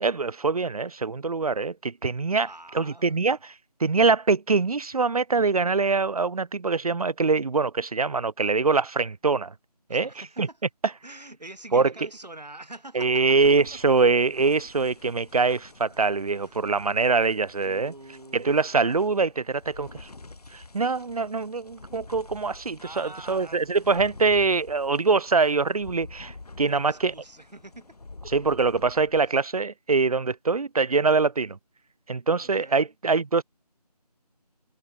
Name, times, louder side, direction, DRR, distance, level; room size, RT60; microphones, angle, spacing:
voice 1, 0.0-2.5 2.7-3.5 3.8-9.5 9.9-10.1 10.4-10.5 11.7-11.9 12.9-17.9 18.3-20.1 20.5-27.1 28.3-31.6 32.1-33.4, right 4 dB, 60° right, 0.6 m, -24 dB
voice 2, 2.4-3.2 9.9-10.6 11.0-13.4 13.7-13.8 16.3-16.7 17.6-18.7 22.8-24.1 26.6-28.3 29.2-29.3 32.4-32.9, right 2 dB, 80° right, 6.5 m, -45 dB
sound 1, 13.4-29.3, left 3 dB, 65° left, 1.3 m, -48 dB
figure-of-eight pair, 165°, 21 cm